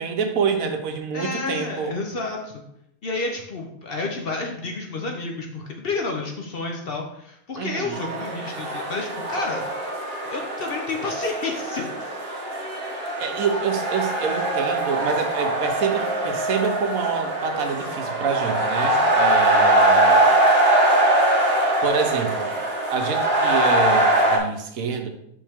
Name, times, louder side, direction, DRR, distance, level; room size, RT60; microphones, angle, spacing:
voice 1, 0.0-2.0 7.6-8.0 13.2-20.2 21.8-22.5 22.9-25.1, right 6 dB, 75° right, 6 dB, 1.2 m, -27 dB
voice 2, 1.1-2.6 3.0-9.6 10.3-11.9, left 3 dB, 50° left, 2 dB, 0.8 m, -30 dB
sound 1, 7.9-24.4, right 1 dB, 45° right, 1.3 m, -22 dB
5.4 x 5.3 x 3.5 m, 0.77 s
omnidirectional pair, 1.5 m